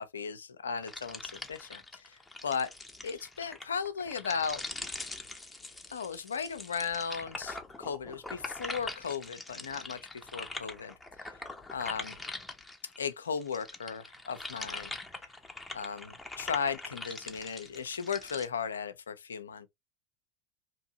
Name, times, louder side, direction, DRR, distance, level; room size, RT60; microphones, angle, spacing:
voice 1, 0.0-2.7 3.0-4.6 5.9-10.9 11.7-12.2 13.0-14.9 15.7-19.7, left 6 dB, 80° left, 0.4 m, -36 dB
sound 1, 0.8-13.0 13.4-18.5, left 2 dB, 10° left, 0.6 m, -43 dB
2.8 x 2.6 x 2.7 m
figure-of-eight pair, 80°, 0 cm